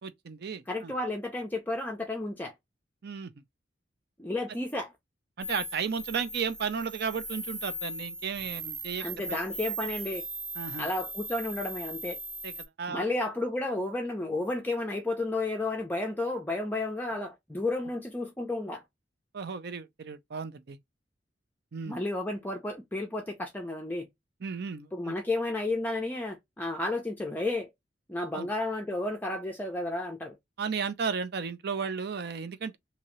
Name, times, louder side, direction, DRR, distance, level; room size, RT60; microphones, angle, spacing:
voice 1, 0.0-0.9 3.0-3.3 5.4-9.4 10.6-10.9 12.4-13.1 19.3-20.8 21.7-22.0 24.4-25.2 28.3-28.5 30.6-32.8, right 5 dB, 60° right, 0.5 m, -34 dB
voice 2, 0.7-2.5 4.2-4.9 9.0-10.2 10.8-12.2 12.9-18.8 21.9-24.1 24.9-27.7 28.1-30.4, left 2 dB, 10° left, 0.5 m, -32 dB
sound 1, 5.4-12.7, right 2 dB, 30° right, 0.8 m, -39 dB
2.8 x 2.7 x 3.0 m
head